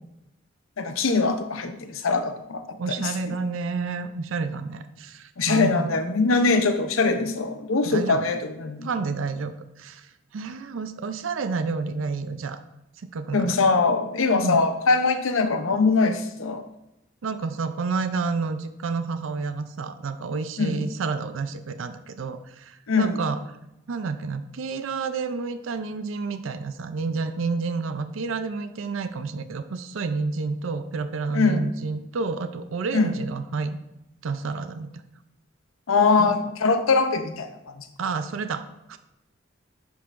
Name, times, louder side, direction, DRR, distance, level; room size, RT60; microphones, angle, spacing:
voice 1, 0.8-2.6 3.0-3.4 5.4-8.9 13.3-16.6 20.6-20.9 22.9-23.2 31.3-31.7 32.9-33.1 35.9-37.9, left 4 dB, 85° left, 8 dB, 0.7 m, -22 dB
voice 2, 2.8-6.0 7.8-8.3 8.8-12.6 13.0-13.6 14.4-14.6 17.2-23.4 23.9-33.8 34.2-34.9 36.2-36.4 38.0-39.0, right 4 dB, 80° right, 9 dB, 0.5 m, -30 dB
10.0 x 5.5 x 2.5 m, 0.88 s
head